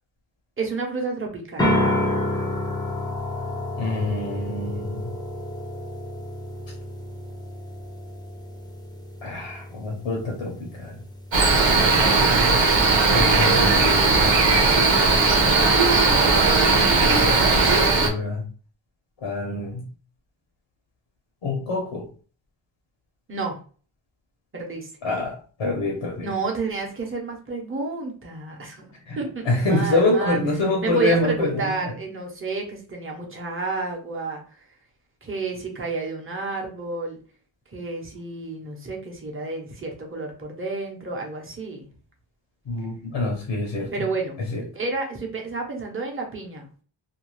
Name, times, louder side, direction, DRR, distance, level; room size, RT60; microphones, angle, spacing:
voice 1, 0.6-1.7 12.6-12.9 23.3-23.5 24.5-24.9 26.2-30.4 30.8-34.4 35.2-37.2 37.7-41.9 43.9-44.4 44.7-46.7, right 3 dB, 25° right, 0 dB, 0.8 m, -30 dB
sound 1, 1.6-13.3, left 1 dB, 10° left, 0.6 m, -30 dB
voice 2, 3.8-5.1 9.2-11.0 13.1-15.0 16.5-18.5 19.2-19.9 21.4-22.1 25.0-26.3 29.1-29.2 29.4-31.7 42.7-43.9 44.4-44.6, left 2 dB, 80° left, -1 dB, 0.9 m, -26 dB
Cricket, 11.3-18.1, right 3 dB, 65° right, 0.9 m, -18 dB
2.6 x 2.3 x 3.1 m, 0.41 s
wide cardioid pair, 95°, 49 cm